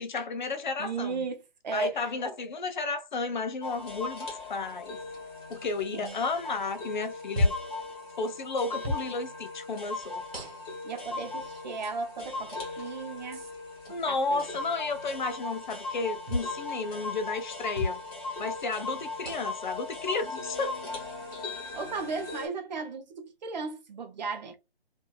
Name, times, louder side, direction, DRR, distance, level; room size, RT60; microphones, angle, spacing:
voice 1, 0.0-1.2 1.7-5.0 5.5-7.5 8.2-10.2 13.9-18.0 18.4-20.8, left 4 dB, 50° left, 0.6 m, -32 dB
voice 2, 0.8-2.3 5.9-6.2 10.8-13.4 13.9-14.4 21.7-24.6, right 4 dB, 45° right, 0.8 m, -35 dB
sound 1, 3.6-22.5, left 3 dB, 25° left, 1.1 m, -38 dB
sound 2, 7.4-7.7 8.8-9.1 10.3-10.8 11.8-11.9 13.3-13.5 16.3-16.5 17.7-18.0 19.2-19.6 20.7-20.8 22.2-22.4, left 1 dB, 85° right, 1.1 m, -31 dB
2.7 x 2.6 x 2.2 m
figure-of-eight pair, 145°, 30 cm